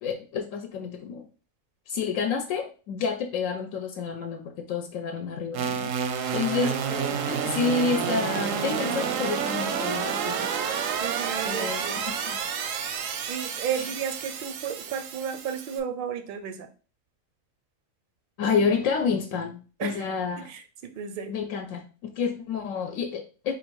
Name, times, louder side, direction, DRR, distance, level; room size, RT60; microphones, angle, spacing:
voice 1, 0.0-1.3 1.9-5.9 6.3-6.8 7.3-10.5 11.4-12.4 13.7-13.9 18.4-20.5 21.3-23.5, left 5 dB, 85° left, 4 dB, 1.0 m, -29 dB
sound 1, 5.5-15.8, right 7 dB, 85° right, 1.0 m, -29 dB
voice 2, 6.5-7.2 11.0-12.0 13.3-16.7 19.8-20.0 20.4-21.3, right 8 dB, 65° right, 8 dB, 0.5 m, -33 dB
3.9 x 2.5 x 4.5 m, 0.37 s
omnidirectional pair, 1.3 m